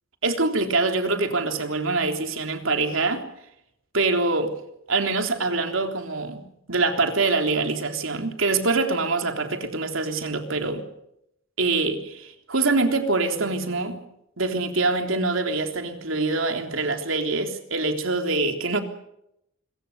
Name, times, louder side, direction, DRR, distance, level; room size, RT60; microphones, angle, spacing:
voice 1, 0.2-3.3 3.9-4.6 4.9-10.9 11.6-14.0 14.4-18.8, right 3 dB, 80° right, 3.6 m, -24 dB
26.0 x 23.5 x 6.8 m
head